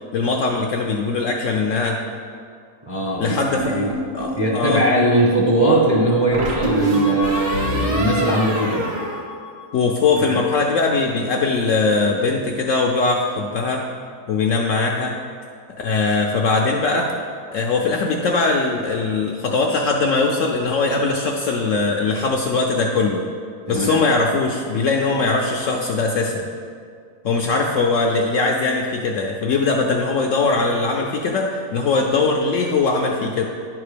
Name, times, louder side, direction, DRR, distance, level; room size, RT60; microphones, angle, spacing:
voice 1, 0.1-2.0 3.2-3.8 4.1-4.8 9.7-13.8 14.3-15.2 15.8-17.1 17.5-23.3 23.7-26.5 27.2-33.5, left 3 dB, 70° left, 1 dB, 0.8 m, -20 dB
voice 2, 2.9-3.9 4.4-8.9 10.2-10.4 23.7-24.0, right 1 dB, 20° right, -3 dB, 0.7 m, -20 dB
sound 1, 3.6-4.4 6.3-10.0, right 3 dB, 85° right, 1.7 m, -25 dB
10.0 x 3.6 x 5.0 m, 2.2 s
omnidirectional pair, 1.7 m